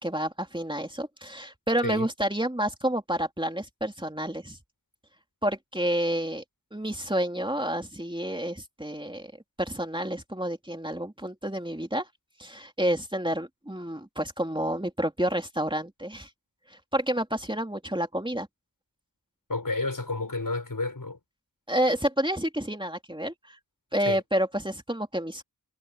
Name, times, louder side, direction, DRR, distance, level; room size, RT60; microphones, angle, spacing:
voice 1, 0.0-4.6 5.4-6.4 6.7-9.3 9.6-12.1 12.4-16.3 16.7-18.5 21.7-23.6 23.9-25.4, right 1 dB, 15° right, 2.9 m, -29 dB
voice 2, 19.5-21.2 24.1-24.2, left 3 dB, 70° left, 7.1 m, -30 dB
wide cardioid pair, 55°, 34 cm